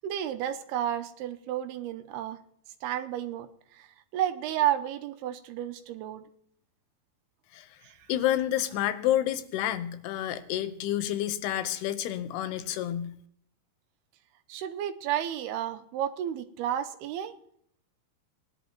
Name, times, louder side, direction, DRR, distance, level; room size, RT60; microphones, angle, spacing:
voice 1, 0.0-2.4 2.8-3.5 3.7-3.9 4.1-6.2 7.8-8.0 14.5-17.3, right 11 dB, 85° right, 8 dB, 2.8 m, -31 dB
voice 2, 8.1-13.1, left 12 dB, 85° left, 11 dB, 2.9 m, -29 dB
20.0 x 11.0 x 2.9 m, 0.68 s
omnidirectional pair, 4.6 m